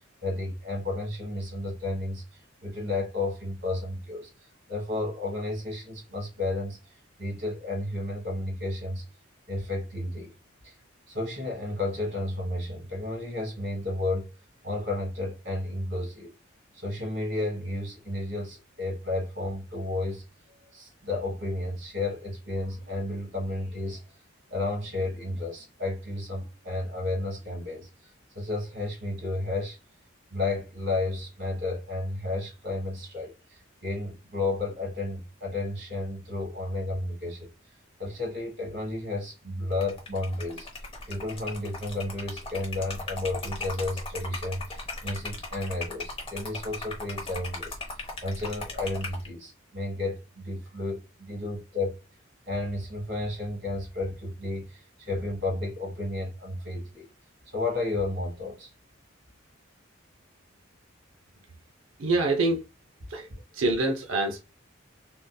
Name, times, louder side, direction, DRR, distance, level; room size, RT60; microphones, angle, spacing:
voice 1, 0.2-4.3 4.7-6.8 7.2-9.0 9.5-10.3 10.6-10.7 11.1-14.3 14.6-16.3 16.7-20.2 20.7-24.0 24.5-29.8 30.3-37.5 38.0-40.7 41.1-47.8 48.2-51.9 52.5-57.1 57.5-58.7, left 2 dB, 55° right, 1.4 m, -32 dB
Liquid, 39.7-49.3, left 2 dB, 25° left, 0.8 m, -38 dB
voice 2, 62.0-62.6 63.1-64.4, right 2 dB, 70° right, 0.6 m, -26 dB
3.6 x 2.6 x 2.2 m
head